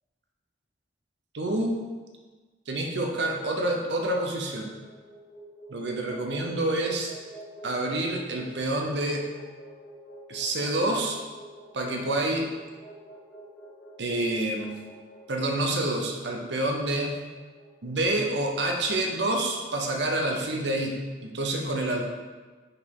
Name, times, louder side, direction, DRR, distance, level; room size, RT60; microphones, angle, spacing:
voice 1, 1.3-1.8 2.7-4.7 5.7-7.1 7.6-9.2 10.3-11.2 11.7-12.5 14.0-14.7 15.3-17.2 17.8-22.0, right 1 dB, 75° right, 2 dB, 0.8 m, -28 dB
sound 1, 4.5-18.7, right 1 dB, 60° left, 1.2 m, -48 dB
5.5 x 4.2 x 5.4 m, 1.4 s
head